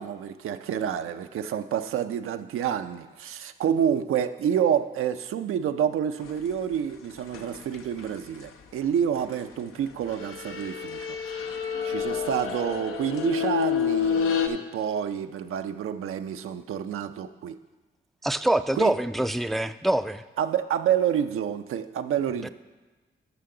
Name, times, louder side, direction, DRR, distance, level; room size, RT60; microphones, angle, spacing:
voice 1, 0.0-11.2 11.8-17.5 18.8-18.9 20.4-22.5, right 9 dB, 85° right, 9 dB, 0.5 m, -28 dB
sound 1, 7.3-8.1 10.1-14.5, left 8 dB, 85° left, 0.6 m, -28 dB
voice 2, 18.2-20.2 22.4-22.5, right 1 dB, ahead, 11 dB, 0.3 m, -25 dB
12.5 x 5.8 x 3.8 m, 1.2 s
cardioid pair, 50°, 21 cm